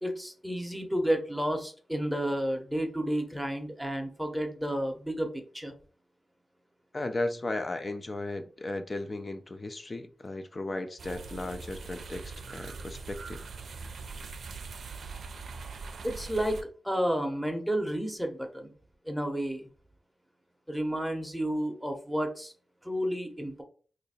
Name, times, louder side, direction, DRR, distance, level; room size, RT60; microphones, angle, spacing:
voice 1, 0.0-5.3 5.5-5.7 16.0-16.6 16.8-18.7 19.1-19.7 20.7-22.5 22.8-23.6, equal, ahead, 0.7 m, -31 dB
voice 2, 6.9-13.4, left 2 dB, 35° left, 0.4 m, -35 dB
sound 1, 11.0-16.6, right 4 dB, 85° right, 0.4 m, -42 dB
2.8 x 2.5 x 4.1 m
wide cardioid pair, 95°, 0 cm